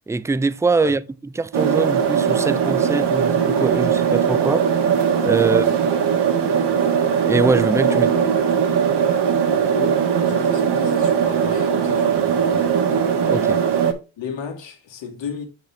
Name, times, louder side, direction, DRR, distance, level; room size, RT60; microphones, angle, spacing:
voice 1, 0.1-1.0 1.4-4.7 5.2-5.6 7.2-8.1 13.3-13.6, right 3 dB, 5° right, 0.3 m, -22 dB
sound 1, 1.5-13.9, right 7 dB, 65° right, 1.4 m, -19 dB
voice 2, 9.5-12.8 14.2-15.5, left 6 dB, 75° left, 2.1 m, -34 dB
5.9 x 5.7 x 3.3 m
cardioid pair, 80°, 44 cm